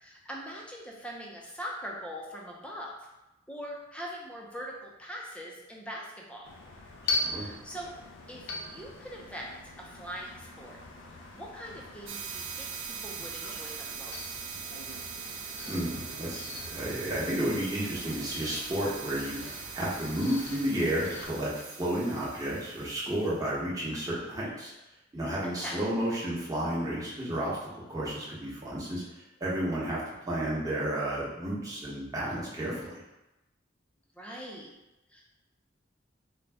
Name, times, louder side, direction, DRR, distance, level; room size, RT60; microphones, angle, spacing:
voice 1, 0.0-2.9 3.5-6.5 7.3-7.9 8.3-9.5 9.8-10.8 11.3-14.6 25.4-25.8 34.2-34.7 35.1-35.2, equal, 5° left, -2 dB, 0.5 m, -42 dB
sound 1, 6.4-21.3, left 2 dB, 75° left, 0.5 m, -41 dB
voice 2, 7.0-7.5 15.7-19.4 19.7-24.7 25.1-29.0 29.4-30.0 30.3-33.0, right 1 dB, 20° right, -7 dB, 1.0 m, -32 dB
sound 2, 12.1-23.3, right 7 dB, 75° right, 0.5 m, -42 dB
3.9 x 2.2 x 3.4 m, 0.96 s
head